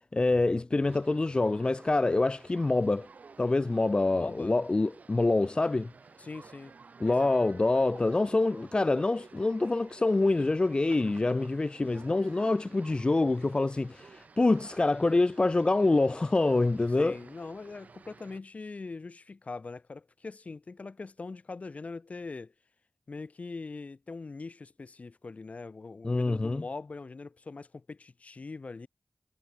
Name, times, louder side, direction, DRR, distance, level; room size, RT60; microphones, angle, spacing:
voice 1, 0.1-3.1 3.4-5.9 7.0-17.2 26.0-26.6, left 2 dB, 40° left, 0.4 m, -26 dB
sound 1, 0.8-18.4, right 4 dB, 80° right, 2.4 m, -53 dB
voice 2, 4.1-4.6 6.2-6.7 7.1-7.3 17.0-22.5 23.1-28.9, left 3 dB, 65° left, 2.2 m, -42 dB
cardioid pair, 45°, 3 cm